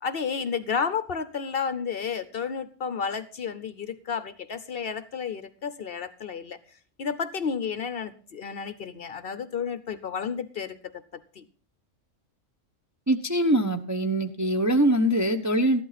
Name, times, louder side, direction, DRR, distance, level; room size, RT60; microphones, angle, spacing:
voice 1, 0.0-6.6 7.0-10.8 11.4-11.5, left 6 dB, 55° left, 13 dB, 0.8 m, -31 dB
voice 2, 13.1-15.8, right 1 dB, 20° right, 5 dB, 0.5 m, -23 dB
13.5 x 11.0 x 4.0 m, 0.42 s
omnidirectional pair, 1.3 m